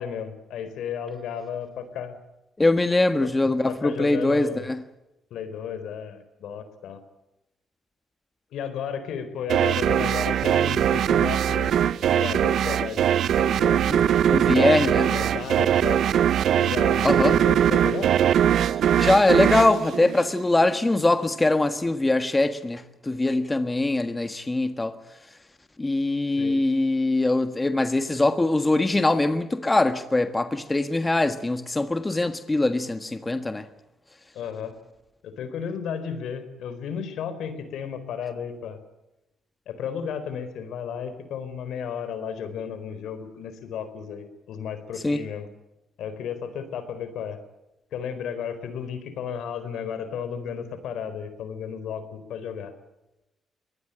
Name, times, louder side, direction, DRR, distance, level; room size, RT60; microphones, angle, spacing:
voice 1, 0.0-2.2 3.2-3.3 3.7-4.7 5.3-7.0 8.5-11.7 12.1-13.0 13.4-14.1 15.0-16.0 16.6-18.1 26.4-26.6 34.3-34.7 35.2-38.8 39.7-45.5 46.0-47.4 47.9-52.7, left 7 dB, 80° left, 11 dB, 4.2 m, -33 dB
voice 2, 2.6-4.8 13.9-14.0 14.3-15.1 17.0-17.3 19.0-25.0 25.8-33.6 45.0-45.2, left 2 dB, 15° left, 9 dB, 1.6 m, -22 dB
sound 1, 9.5-20.8, right 10 dB, 70° right, 0.7 m, -21 dB
23.0 x 19.5 x 9.0 m, 0.95 s
cardioid pair, 90°, 0 cm